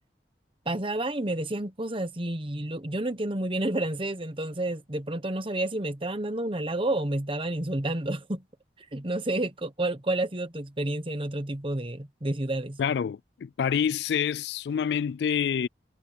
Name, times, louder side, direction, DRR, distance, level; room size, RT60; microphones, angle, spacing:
voice 1, 0.6-8.4 8.9-12.8, right 1 dB, 30° right, 1.2 m, -30 dB
voice 2, 12.8-15.7, left 7 dB, 70° left, 0.3 m, -27 dB
head